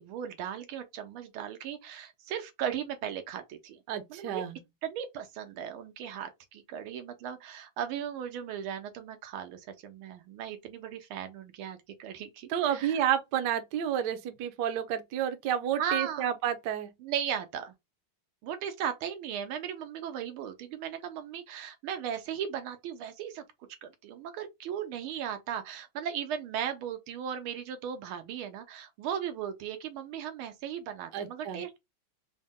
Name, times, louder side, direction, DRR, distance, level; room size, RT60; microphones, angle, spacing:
voice 1, 0.0-3.8 4.1-4.4 4.8-13.0 15.7-16.3 17.0-17.7 18.4-23.4 23.8-31.8, right 9 dB, 90° right, 1.6 m, -37 dB
voice 2, 3.9-4.6 12.5-16.9 31.1-31.6, right 10 dB, 70° right, 1.1 m, -30 dB
4.1 x 2.1 x 3.4 m
omnidirectional pair, 2.3 m